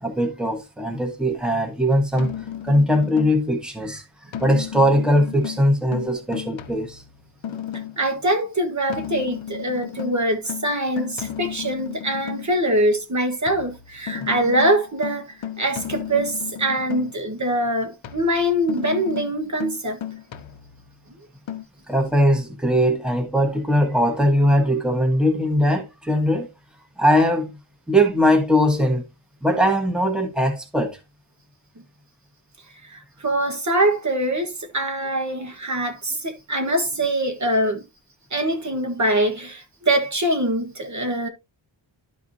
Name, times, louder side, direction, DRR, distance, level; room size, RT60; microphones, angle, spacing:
voice 1, 0.0-2.3 2.6-4.1 4.4-7.0 14.2-14.3 21.9-26.5 27.0-27.5 27.9-29.0 29.4-31.0, equal, ahead, 1.3 m, -20 dB
sound 1, 2.2-3.6 4.3-8.1 8.9-12.6 13.5-17.3 18.0-21.0 21.5-21.6, left 10 dB, 75° left, 0.9 m, -34 dB
voice 2, 8.0-20.0 32.9-37.8 38.3-41.3, right 1 dB, 35° right, 1.4 m, -23 dB
12.5 x 4.7 x 2.7 m
wide cardioid pair, 150°, 47 cm